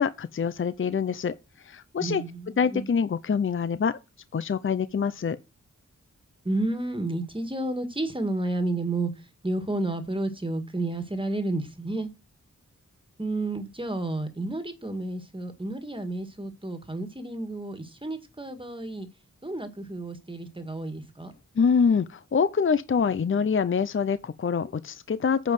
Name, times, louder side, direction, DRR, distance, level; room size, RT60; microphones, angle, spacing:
voice 1, 0.0-2.2 2.6-4.0 4.3-5.4 21.6-25.5, left 6 dB, 45° left, 0.6 m, -25 dB
voice 2, 2.0-2.9 6.5-9.1 9.4-12.1 13.2-19.1 19.4-21.3, right 2 dB, 15° right, 1.7 m, -31 dB
9.2 x 5.3 x 7.7 m
wide cardioid pair, 115°, 30 cm